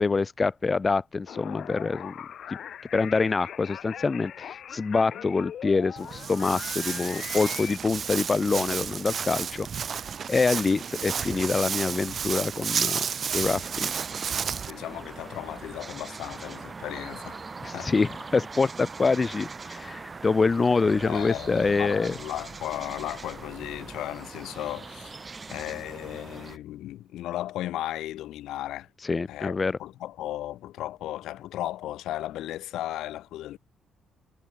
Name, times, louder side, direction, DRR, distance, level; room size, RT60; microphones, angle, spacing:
voice 1, 0.0-2.1 2.9-9.7 10.3-13.1 13.3-13.9 17.6-22.1 29.0-29.8, left 4 dB, 30° left, 0.8 m, -25 dB
sound 1, 1.3-7.8, left 9 dB, 65° left, 1.7 m, -40 dB
Walk footsteps, 6.0-14.7, right 7 dB, 50° right, 1.9 m, -31 dB
sound 2, 13.6-26.6, right 4 dB, 30° right, 0.8 m, -41 dB
voice 2, 14.7-17.4 17.7-17.9 21.0-25.1 25.5-28.9 29.3-33.6, left 14 dB, 85° left, 2.6 m, -35 dB
cardioid pair, 90°, 0 cm